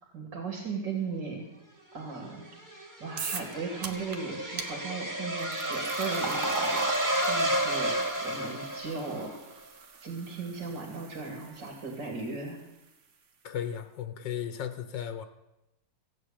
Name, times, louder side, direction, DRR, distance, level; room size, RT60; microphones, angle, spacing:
voice 1, 0.0-1.4 1.9-2.5 3.0-9.3 10.0-12.6, right 4 dB, 75° right, 1 dB, 3.0 m, -37 dB
sound 1, 2.3-9.3, right 1 dB, 10° right, 1.6 m, -31 dB
sound 2, 3.2-3.5 3.8-4.2 4.6-4.7 5.4-12.5, right 5 dB, 50° right, 1.3 m, -41 dB
voice 2, 13.4-15.2, left 9 dB, 90° left, 9 dB, 1.6 m, -35 dB
16.0 x 8.5 x 8.7 m, 0.94 s
omnidirectional pair, 1.9 m